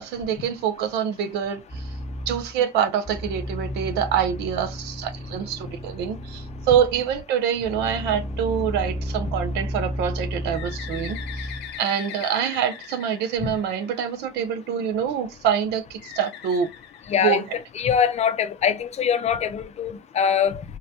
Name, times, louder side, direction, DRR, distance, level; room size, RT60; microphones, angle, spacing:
voice 1, 0.0-1.9 2.3-11.5 11.8-16.7 17.2-17.4, right 8 dB, 90° right, 0.6 m, -25 dB
sound 1, 1.7-2.6 3.0-7.1 7.6-11.8, equal, 15° left, 0.8 m, -32 dB
Bird, 10.5-14.3 16.0-17.8, left 10 dB, 85° left, 0.7 m, -40 dB
voice 2, 17.1-17.4 17.8-20.6, left 8 dB, 40° left, 0.5 m, -23 dB
3.7 x 2.2 x 2.6 m
cardioid pair, 110°, 17 cm